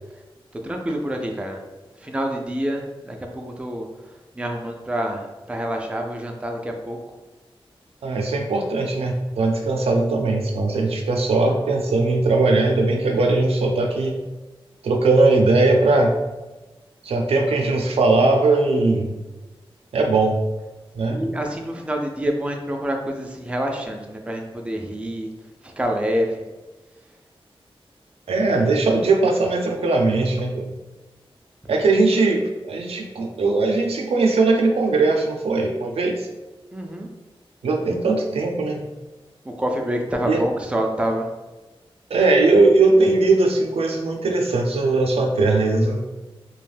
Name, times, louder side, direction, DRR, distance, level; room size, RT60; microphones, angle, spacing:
voice 1, 0.6-1.6 2.0-3.9 4.3-7.0 21.1-25.3 25.6-26.4 36.7-37.1 39.5-41.3, equal, 10° right, 2 dB, 0.4 m, -27 dB
voice 2, 8.0-14.2 14.8-16.2 17.0-19.1 19.9-20.4 20.9-21.2 28.3-30.7 31.7-36.3 37.6-38.8 40.2-40.4 42.1-46.0, right 3 dB, 85° right, 2 dB, 0.4 m, -19 dB
2.4 x 2.1 x 3.2 m, 1.1 s
wide cardioid pair, 90°, 10 cm